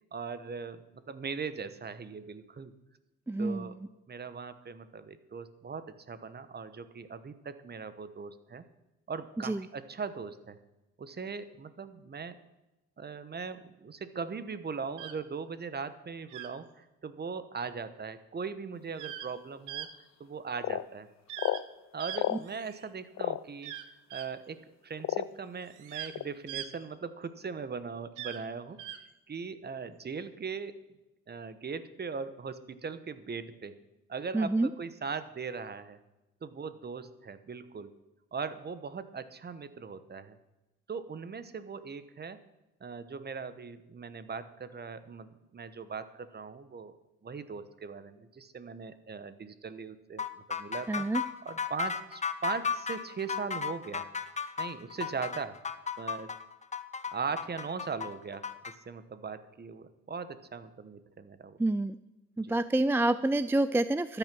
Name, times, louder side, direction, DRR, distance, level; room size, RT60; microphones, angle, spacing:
voice 1, 0.1-2.7 3.4-3.8 4.1-8.6 9.1-10.6 11.0-12.4 13.0-19.9 20.2-21.1 21.9-23.7 24.1-28.8 29.3-30.8 31.3-33.8 34.1-36.0 36.4-37.9 38.3-40.4 40.9-42.4 42.8-47.0 47.2-51.1 51.4-54.1 54.6-55.6 56.0-56.3 57.1-58.5 58.9-61.6 62.4-62.6, right 5 dB, 35° right, 13 dB, 1.1 m, -39 dB
voice 2, 3.3-3.9 9.4-9.6 34.3-34.7 50.9-51.2 61.6-62.0 62.4-64.2, right 2 dB, 10° right, 14 dB, 0.3 m, -28 dB
sound 1, 15.0-15.1 16.3-16.5 18.9-19.3 19.7-19.9 21.3-21.6 22.0-22.9 23.6-24.3 25.6-26.1 26.5-26.7 28.2-28.4 28.8-29.0, right 11 dB, 90° right, 1.0 m, -41 dB
sound 2, 19.9-20.0 20.6-20.9 21.4-21.6 22.1-22.4 23.2-23.4 24.2-24.3 25.0-25.5 26.1-26.3, left 13 dB, 60° left, 0.5 m, -31 dB
sound 3, 50.2-58.7, left 6 dB, 25° left, 0.9 m, -35 dB
13.0 x 9.2 x 6.1 m, 0.99 s
cardioid pair, 90°, 30 cm